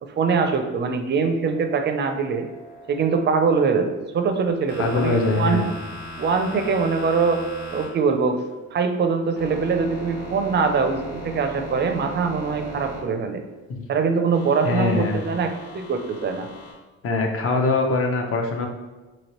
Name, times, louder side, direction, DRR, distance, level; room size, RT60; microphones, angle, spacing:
voice 1, 0.0-2.5 2.9-5.6 6.2-7.4 7.7-8.4 8.7-13.4 13.9-16.5, right 5 dB, 35° right, 7 dB, 0.4 m, -23 dB
sound 1, 1.5-3.5 4.3-8.5 8.9-13.5 14.3-16.7, equal, 70° left, 1.5 m, -38 dB
voice 2, 4.8-5.7 13.7-13.8 14.6-15.2 17.0-18.7, left 3 dB, 45° left, 2 dB, 0.6 m, -22 dB
2.9 x 2.8 x 3.0 m, 1.2 s
cardioid pair, 90°, 30 cm